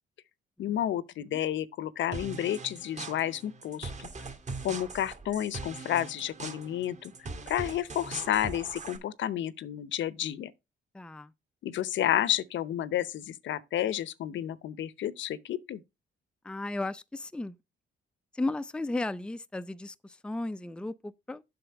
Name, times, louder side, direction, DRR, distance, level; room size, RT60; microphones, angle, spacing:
voice 1, 0.6-4.1 4.6-7.1 7.5-10.5 11.6-15.8, left 11 dB, 70° left, 0.8 m, -31 dB
sound 1, 2.1-9.0, right 3 dB, 35° right, 2.1 m, -41 dB
voice 2, 10.9-11.3 16.4-17.6 18.3-21.4, left 2 dB, 5° left, 0.5 m, -35 dB
7.8 x 6.2 x 4.6 m
cardioid pair, 90°, 20 cm